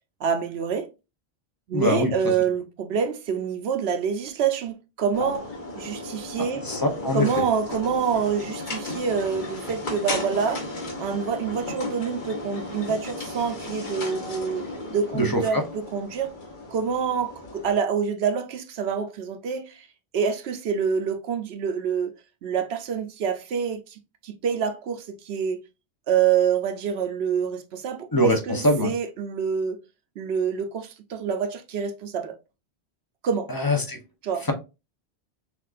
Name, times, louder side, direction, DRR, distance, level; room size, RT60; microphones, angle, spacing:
voice 1, 0.2-0.9 1.7-5.5 5.7-6.7 7.1-10.6 11.0-14.6 14.9-16.3 16.7-19.9 20.1-22.1 22.4-25.6 26.1-29.8 30.2-32.4 33.2-33.5 34.2-34.5, right 6 dB, 75° right, 0.9 m, -26 dB
voice 2, 1.7-2.1 6.4-7.4 15.1-15.6 28.1-28.9 33.5-34.0, left 1 dB, 25° left, 0.6 m, -23 dB
sound 1, 5.1-17.8, left 2 dB, 50° left, 1.1 m, -35 dB
6.0 x 2.4 x 2.4 m
omnidirectional pair, 1.1 m